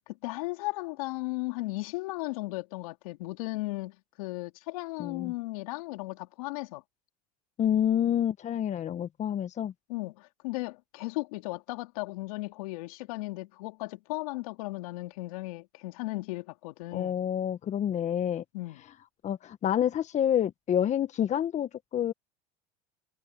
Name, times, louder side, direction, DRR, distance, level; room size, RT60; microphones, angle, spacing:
voice 1, 0.1-6.8 9.9-17.1 18.5-18.8, left 22 dB, 75° left, 3.1 m, -36 dB
voice 2, 5.0-5.3 7.6-9.7 16.9-18.4 19.2-22.1, left 10 dB, 40° left, 1.5 m, -28 dB
hypercardioid pair, 90°, 18 cm